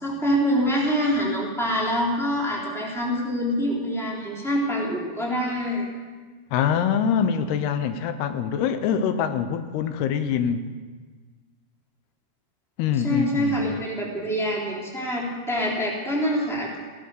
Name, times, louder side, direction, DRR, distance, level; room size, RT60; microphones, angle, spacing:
voice 1, 0.0-5.9 13.0-16.8, equal, ahead, -4 dB, 2.8 m, -25 dB
voice 2, 6.5-10.6 12.8-13.8, left 7 dB, 85° left, 10 dB, 2.8 m, -24 dB
17.0 x 12.0 x 6.7 m, 1.5 s
omnidirectional pair, 4.5 m